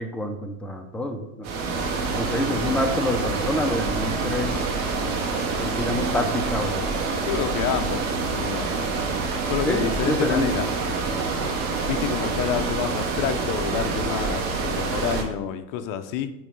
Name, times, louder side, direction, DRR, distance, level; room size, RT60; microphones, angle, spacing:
voice 1, 0.0-1.5 1.9-4.6 5.6-7.0 7.4-7.5 9.6-10.5 11.1-11.5, left 1 dB, 5° left, 4 dB, 0.4 m, -27 dB
sound 1, 1.4-15.2, right 4 dB, 70° right, 1.7 m, -26 dB
voice 2, 7.3-8.9 9.5-10.7 11.9-16.3, left 9 dB, 45° left, 8 dB, 0.6 m, -28 dB
7.0 x 3.1 x 5.7 m, 0.92 s
supercardioid pair, 125°, 43 cm